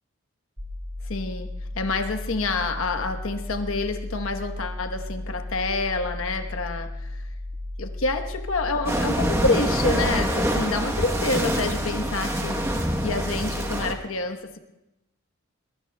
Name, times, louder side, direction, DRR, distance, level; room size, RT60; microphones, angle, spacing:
sound 1, 0.6-13.9, left 1 dB, 30° right, 4.9 m, -35 dB
voice 1, 1.0-1.5 1.7-7.3 7.8-12.6 13.0-14.6, left 3 dB, 80° left, 6 dB, 1.1 m, -28 dB
sound 2, 8.9-13.9, right 1 dB, 10° right, 1.0 m, -26 dB
21.5 x 21.5 x 2.3 m, 0.92 s
head